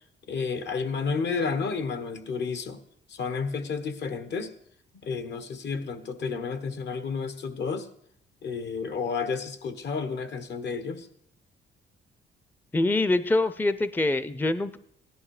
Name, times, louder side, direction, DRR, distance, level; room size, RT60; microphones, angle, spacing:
voice 1, 0.3-2.8 3.1-4.5 5.0-7.9 8.4-11.1, left 5 dB, 60° left, 11 dB, 1.5 m, -31 dB
voice 2, 12.7-14.8, left 2 dB, 10° left, 14 dB, 0.6 m, -24 dB
16.0 x 11.0 x 4.9 m, 0.73 s
cardioid pair, 90°, 20 cm